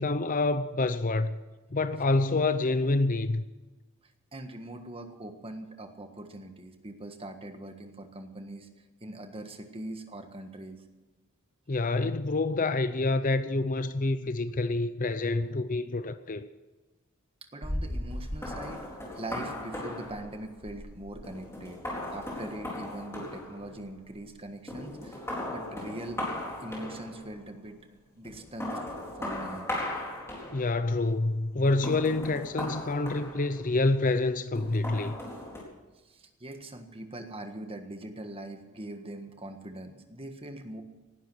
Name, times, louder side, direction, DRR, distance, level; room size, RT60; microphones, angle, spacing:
voice 1, 0.0-1.4 1.7-3.4 11.7-16.5 30.5-35.2, left 2 dB, 35° left, 0.6 m, -27 dB
voice 2, 4.3-8.7 9.0-10.8 17.5-21.8 22.1-26.2 26.6-28.7 29.2-29.7 36.0-40.8, right 1 dB, 25° right, 1.5 m, -42 dB
sound 1, 17.6-24.3 24.7-27.4 28.2-30.9 31.7-33.9 34.6-35.6, left 1 dB, 10° left, 4.2 m, -37 dB
19.0 x 12.0 x 6.2 m
head